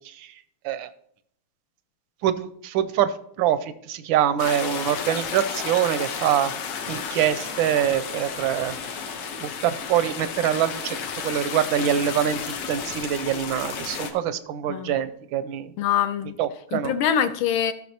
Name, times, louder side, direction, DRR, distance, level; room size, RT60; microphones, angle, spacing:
voice 1, 2.2-3.1 3.4-3.6 3.9-6.5 6.9-8.7 9.4-11.0 11.2-12.4 12.7-15.7 16.4-16.9, right 10 dB, 75° right, 13 dB, 1.2 m, -24 dB
sound 1, 4.4-14.1, left 6 dB, 90° left, 1.9 m, -32 dB
voice 2, 15.8-16.3 16.7-17.7, left 9 dB, 75° left, 11 dB, 1.4 m, -24 dB
16.0 x 6.4 x 2.8 m, 0.67 s
omnidirectional pair, 2.4 m